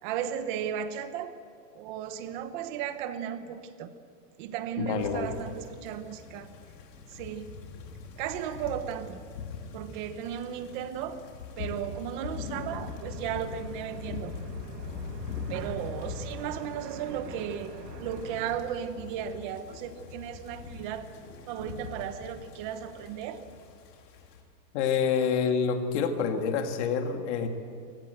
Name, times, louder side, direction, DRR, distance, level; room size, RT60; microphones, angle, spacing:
voice 1, 0.0-1.4 1.7-3.9 4.4-6.5 7.1-7.5 8.2-9.2 9.7-11.2 11.6-14.3 15.5-17.7 18.0-21.1 21.5-23.4, right 9 dB, 30° right, 10 dB, 1.0 m, -35 dB
voice 2, 4.8-5.3 24.7-27.5, left 6 dB, 45° left, 6 dB, 2.1 m, -27 dB
sound 1, 5.0-24.4, left 5 dB, 80° left, 4.0 m, -42 dB
sound 2, 11.7-18.6, right 6 dB, 75° right, 2.3 m, -47 dB
24.0 x 19.5 x 7.9 m, 2.2 s
supercardioid pair, 175°, 49 cm